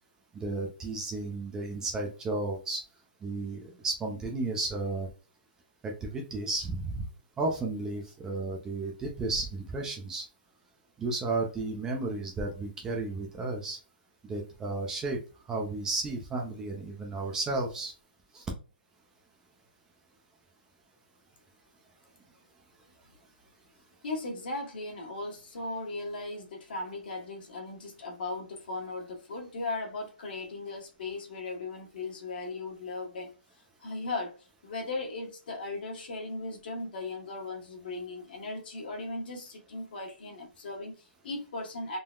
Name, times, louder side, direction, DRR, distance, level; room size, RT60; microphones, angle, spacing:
voice 1, 0.3-2.8 3.2-5.1 5.8-7.1 7.4-10.2 11.0-13.8 14.2-15.2 15.5-17.9 18.3-18.4, right 2 dB, 10° right, 0.5 m, -33 dB
voice 2, 24.0-42.0, left 2 dB, 60° left, 1.2 m, -37 dB
3.7 x 2.0 x 2.3 m
hypercardioid pair, 160°, 6 cm